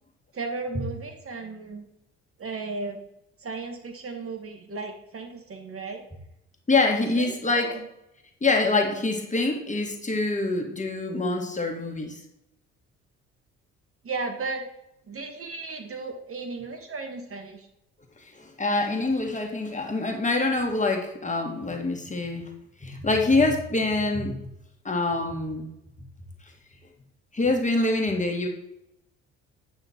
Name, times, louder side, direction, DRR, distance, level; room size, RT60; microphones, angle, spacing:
voice 1, 0.3-1.9 2.4-3.0 3.4-6.0 7.0-7.9 14.0-14.7 15.1-17.7, right 3 dB, 40° right, 5 dB, 1.7 m, -35 dB
voice 2, 6.7-7.8 8.4-12.2 18.2-22.5 22.8-24.4 24.8-25.7 27.3-28.5, left 2 dB, 20° left, 2 dB, 2.1 m, -25 dB
9.2 x 5.8 x 4.4 m, 0.82 s
hypercardioid pair, 55°, 34 cm